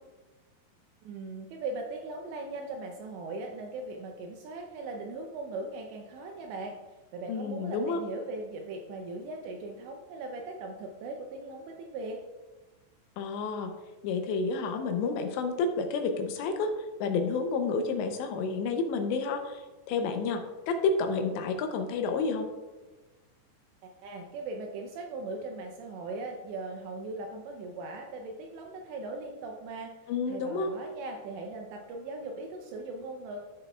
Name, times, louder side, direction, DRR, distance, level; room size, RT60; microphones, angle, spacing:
voice 1, 1.0-12.2 23.8-33.4, right 2 dB, 80° right, 2 dB, 2.8 m, -39 dB
voice 2, 7.3-8.0 13.2-13.7 14.0-16.7 17.0-19.6 19.9-22.5 30.1-30.7, left 4 dB, 80° left, 6 dB, 2.8 m, -30 dB
13.5 x 6.6 x 2.3 m, 1.2 s
omnidirectional pair, 5.3 m